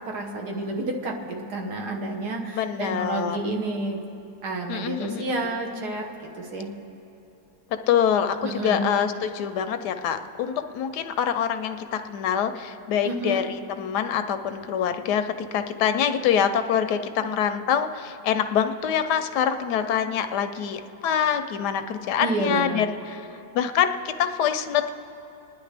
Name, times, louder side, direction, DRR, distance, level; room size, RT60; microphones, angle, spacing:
voice 1, 0.1-4.0 4.4-6.1 6.3-6.7 8.4-8.8 13.0-13.4 22.2-22.9, right 2 dB, 75° right, 2 dB, 1.7 m, -30 dB
voice 2, 2.5-3.4 4.7-5.3 7.9-23.3 23.5-24.9, left 8 dB, 90° left, 9 dB, 1.2 m, -25 dB
26.5 x 10.5 x 3.3 m, 2.9 s
omnidirectional pair, 1.7 m